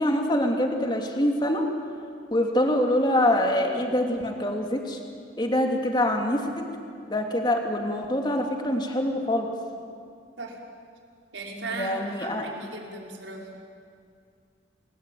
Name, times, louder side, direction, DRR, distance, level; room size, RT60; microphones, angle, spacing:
voice 1, 0.0-1.6 2.3-5.0 5.4-6.7 7.1-9.5 11.7-12.5, left 1 dB, 25° left, 3 dB, 2.8 m, -25 dB
voice 2, 11.3-13.5, right 2 dB, 85° right, 0 dB, 5.4 m, -37 dB
29.5 x 20.5 x 9.3 m, 2.3 s
head